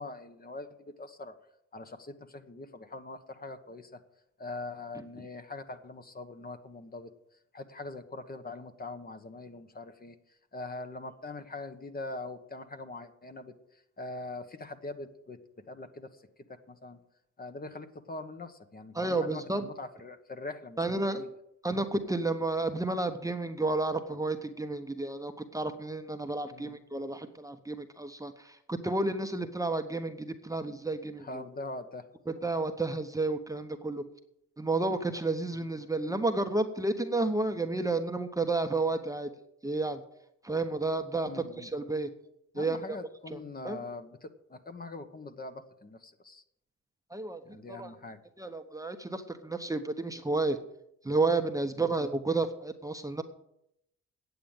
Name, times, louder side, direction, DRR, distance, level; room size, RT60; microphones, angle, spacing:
voice 1, 0.0-1.3 1.7-4.0 4.4-7.1 7.5-10.2 10.5-15.4 15.7-17.0 17.4-21.3 26.5-26.8 31.2-32.1 41.2-41.7 42.5-46.4 47.4-48.2 51.8-51.9, left 2 dB, 30° left, 9 dB, 1.2 m, -43 dB
voice 2, 18.9-19.6 20.8-21.2 21.6-31.4 32.3-34.0 34.6-39.3 39.6-40.0 40.4-42.1 42.5-42.8 43.3-43.4 43.6-43.8 47.1-47.9 48.4-50.6 51.0-53.2, right 2 dB, 10° right, 6 dB, 0.9 m, -31 dB
9.3 x 7.8 x 8.8 m, 0.78 s
cardioid pair, 90°, 30 cm